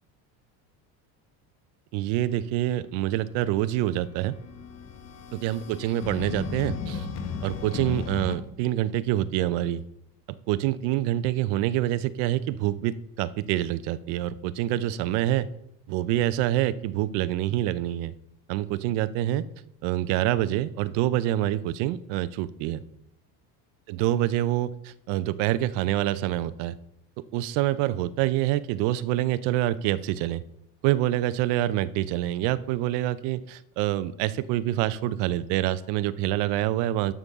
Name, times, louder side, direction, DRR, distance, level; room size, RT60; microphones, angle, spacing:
voice 1, 1.9-4.3 5.3-7.1 7.4-9.8 10.5-15.5 15.9-18.1 18.5-19.5 19.8-22.8 23.9-26.7 27.3-30.4 30.8-37.1, right 14 dB, 75° right, 15 dB, 0.7 m, -26 dB
sound 1, 3.6-8.4, left 5 dB, 40° left, 1.2 m, -35 dB
11.0 x 6.9 x 3.6 m, 0.79 s
cardioid pair, 145°, 43 cm